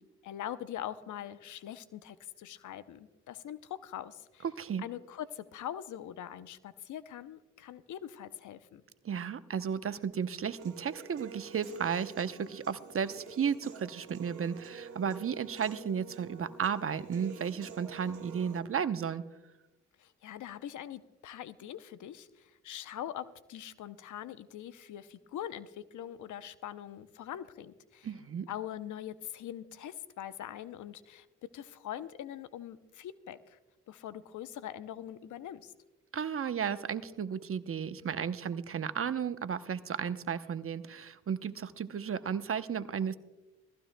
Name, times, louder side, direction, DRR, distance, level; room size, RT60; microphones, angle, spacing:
voice 1, 0.2-4.4 4.8-8.8 20.0-28.1 28.5-31.3 31.5-33.6 33.9-35.7, left 11 dB, 70° left, 14 dB, 0.7 m, -43 dB
voice 2, 4.4-4.9 9.0-19.2 28.0-28.5 36.1-43.2, right 7 dB, 45° right, 12 dB, 0.8 m, -34 dB
Human voice / Piano, 10.6-18.6, right 5 dB, 75° right, 1.9 m, -49 dB
20.5 x 15.5 x 2.2 m, 1.1 s
supercardioid pair, 45°, 31 cm